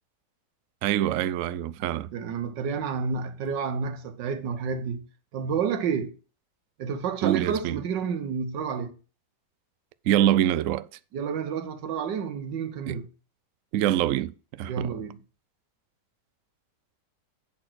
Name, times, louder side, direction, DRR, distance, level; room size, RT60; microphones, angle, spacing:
voice 1, 0.8-2.1 7.2-7.8 10.1-10.9 12.9-13.0 13.7-15.1, right 12 dB, 70° right, 0.7 m, -25 dB
voice 2, 1.8-5.0 5.3-6.1 6.8-8.9 11.1-13.1 14.7-15.2, right 6 dB, 90° right, 1.6 m, -30 dB
8.9 x 4.3 x 6.1 m
omnidirectional pair, 1.9 m